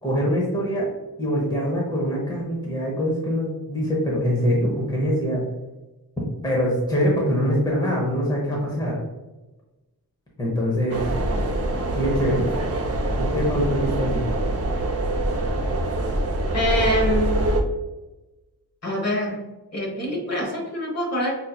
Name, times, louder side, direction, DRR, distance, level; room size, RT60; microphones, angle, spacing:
voice 1, 0.0-0.9 1.2-5.4 6.4-9.0 10.4-11.1 11.9-12.5 13.2-14.3, equal, 10° left, -3 dB, 0.8 m, -23 dB
sound 1, 10.9-17.6, right 1 dB, 40° right, 0.6 m, -24 dB
voice 2, 16.5-17.4 18.8-19.4 19.7-21.3, equal, 40° left, -2 dB, 1.2 m, -25 dB
5.4 x 2.7 x 2.3 m, 1.1 s
wide cardioid pair, 155°, 39 cm